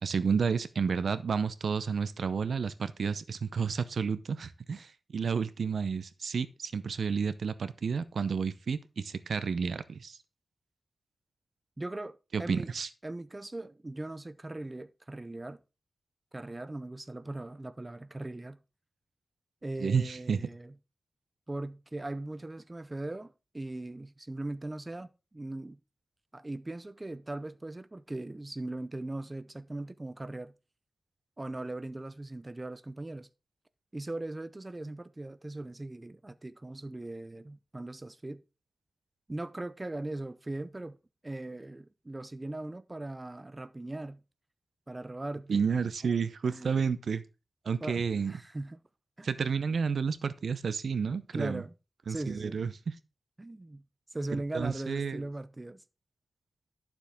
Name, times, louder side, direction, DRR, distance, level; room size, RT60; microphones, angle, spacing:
voice 1, 0.0-10.2 12.3-12.9 19.8-20.4 45.5-47.2 47.6-48.4 49.2-51.6 52.1-52.9 54.5-55.2, right 6 dB, 70° right, 0.7 m, -31 dB
voice 2, 11.8-12.7 13.0-15.6 16.3-18.6 19.6-20.7 21.5-25.8 26.3-30.5 31.4-33.3 33.9-38.4 39.3-41.0 41.2-44.2 44.9-45.6 46.5-46.8 47.8-48.8 49.2-49.3 51.3-51.7 52.1-52.6 53.4-53.8 54.1-55.8, right 2 dB, 20° right, 0.5 m, -39 dB
12.0 x 7.1 x 3.6 m
wide cardioid pair, 145°, 0 cm